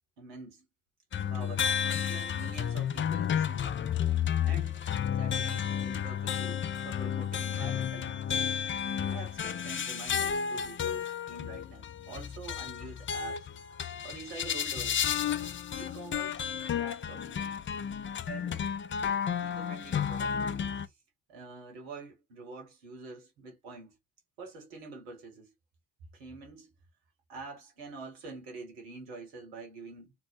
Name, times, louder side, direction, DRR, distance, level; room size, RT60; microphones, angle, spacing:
voice 1, 0.2-0.6 1.3-3.8 4.4-8.4 9.1-13.5 14.0-15.1 15.7-16.4 16.7-17.6 18.3-18.7 19.4-20.4 20.7-21.0 21.3-24.0 24.4-25.5 26.1-26.7 27.3-30.1, right 3 dB, 80° right, 1.2 m, -46 dB
sound 1, 1.1-20.9, left 8 dB, 30° left, 0.4 m, -32 dB
2.8 x 2.0 x 3.1 m
hypercardioid pair, 40°, 44 cm